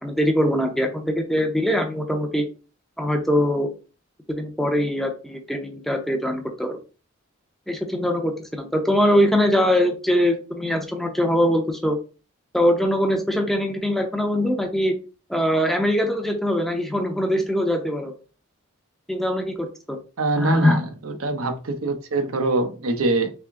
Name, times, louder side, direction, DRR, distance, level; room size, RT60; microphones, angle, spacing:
voice 1, 0.0-2.4 3.0-3.7 4.3-6.8 7.7-12.0 12.5-15.0 15.3-18.1 19.1-20.0 20.4-20.8, equal, ahead, 0.5 m, -22 dB
voice 2, 20.2-23.3, right 2 dB, 80° right, 0.7 m, -24 dB
3.5 x 3.4 x 3.6 m
head